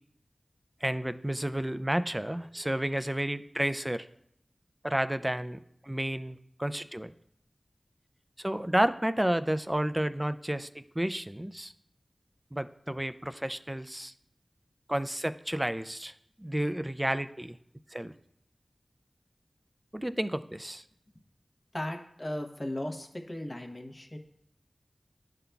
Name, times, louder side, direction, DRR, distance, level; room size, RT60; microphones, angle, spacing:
voice 1, 0.8-4.1 4.8-7.1 8.4-11.7 12.5-14.1 14.9-16.1 16.4-17.6 17.9-18.1 19.9-20.8, right 1 dB, 15° right, 12 dB, 0.4 m, -31 dB
voice 2, 21.7-24.2, left 1 dB, 35° left, 3 dB, 0.9 m, -36 dB
11.5 x 3.8 x 2.3 m, 0.73 s
wide cardioid pair, 45°, 0 cm